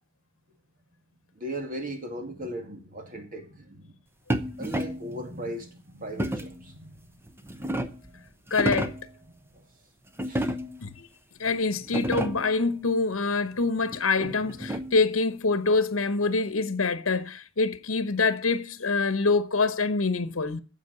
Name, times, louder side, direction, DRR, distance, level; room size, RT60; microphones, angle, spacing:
voice 1, 1.3-4.0 4.6-7.2 7.5-7.7 8.1-8.3 9.3-9.6 10.2-10.5 14.2-14.3, equal, 45° right, 2.5 m, -38 dB
sound 1, 4.3-5.1 6.2-6.6 7.3-8.1 8.5-9.1 10.2-10.9 11.5-11.6 11.8-12.6 13.9-15.1, right 1 dB, 10° right, 0.8 m, -31 dB
voice 2, 8.5-8.9 10.8-11.1 11.4-20.6, left 3 dB, 80° left, 1.0 m, -25 dB
10.5 x 7.4 x 8.2 m
head